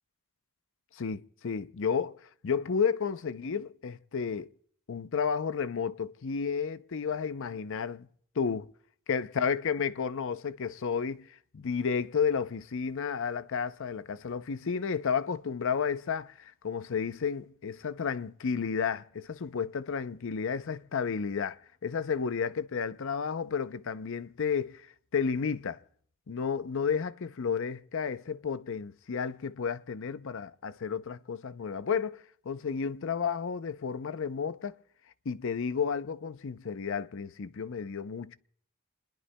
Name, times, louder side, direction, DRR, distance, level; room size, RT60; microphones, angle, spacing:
voice 1, 1.0-4.5 4.9-8.1 8.4-8.6 9.1-11.3 11.5-24.9 25.1-25.8 26.3-34.8 35.3-38.4, left 6 dB, 60° left, 0.5 m, -32 dB
30.0 x 21.0 x 2.2 m
head